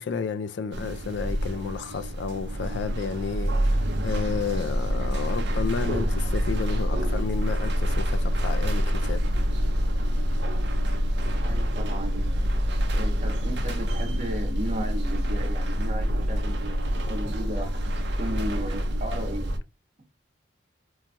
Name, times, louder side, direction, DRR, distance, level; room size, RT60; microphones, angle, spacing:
voice 1, 0.0-9.3, left 5 dB, 70° left, 0.3 m, -32 dB
sound 1, 0.7-19.6, equal, 65° right, 0.6 m, -26 dB
voice 2, 11.4-12.5 12.9-16.8 17.1-17.8 18.2-19.6, right 1 dB, 40° right, 0.9 m, -35 dB
3.1 x 2.2 x 2.5 m
head